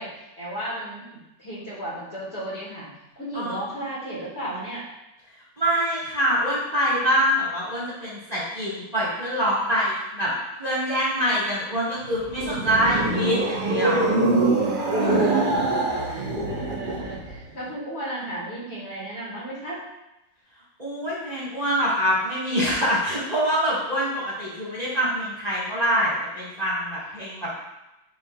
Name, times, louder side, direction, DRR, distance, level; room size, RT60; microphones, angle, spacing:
voice 1, 0.0-4.8 15.0-15.4 16.1-19.8, right 1 dB, 40° left, -6 dB, 1.8 m, -34 dB
voice 2, 5.6-10.3 10.6-14.1 14.9-15.3 20.8-27.5, equal, 25° right, -8 dB, 1.4 m, -25 dB
sound 1, 12.1-17.4, right 2 dB, 50° right, 0.6 m, -24 dB
9.9 x 4.3 x 2.3 m, 0.93 s
omnidirectional pair, 2.0 m